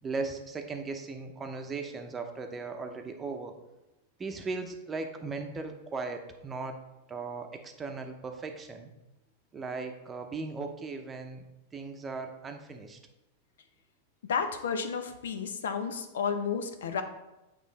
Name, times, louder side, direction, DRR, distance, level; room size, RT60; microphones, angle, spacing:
voice 1, 0.0-3.6 4.2-6.8 7.1-8.9 9.5-11.4 11.7-13.0, right 4 dB, 20° right, 5 dB, 0.7 m, -37 dB
voice 2, 14.3-17.0, left 6 dB, 85° left, 8 dB, 0.7 m, -32 dB
8.4 x 3.0 x 4.1 m, 0.99 s
hypercardioid pair, 130°, 0 cm